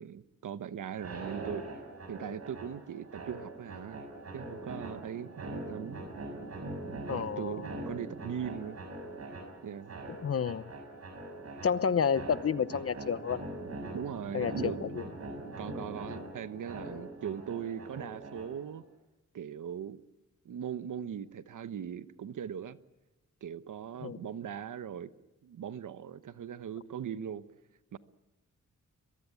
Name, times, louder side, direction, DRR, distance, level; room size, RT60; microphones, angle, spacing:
voice 1, 0.0-1.7 2.1-4.0 4.3-6.1 7.1-8.8 9.6-10.0 13.9-14.8 15.6-18.8 19.3-20.0 20.4-22.8 23.4-25.1 25.4-27.4 27.9-28.0, right 8 dB, 80° right, 13 dB, 1.1 m, -39 dB
sound 1, 0.9-18.8, right 2 dB, 55° right, 6.7 m, -42 dB
voice 2, 7.1-7.7 10.2-10.7 11.6-13.5 14.3-15.0 24.0-24.2, left 6 dB, 50° left, 15 dB, 0.9 m, -30 dB
22.5 x 22.5 x 8.6 m, 1.1 s
wide cardioid pair, 135°, 31 cm